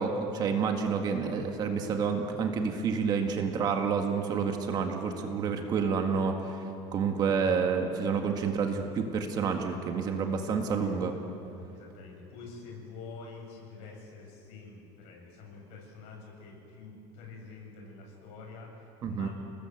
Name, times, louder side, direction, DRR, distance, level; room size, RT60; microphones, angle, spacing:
voice 1, 0.0-6.5 6.9-11.1 19.0-19.3, right 5 dB, 35° right, 4 dB, 1.8 m, -29 dB
voice 2, 10.3-11.0 11.7-19.3, left 4 dB, 60° left, 0 dB, 7.6 m, -47 dB
29.5 x 20.0 x 8.0 m, 2.7 s
cardioid pair, 170°, 12 cm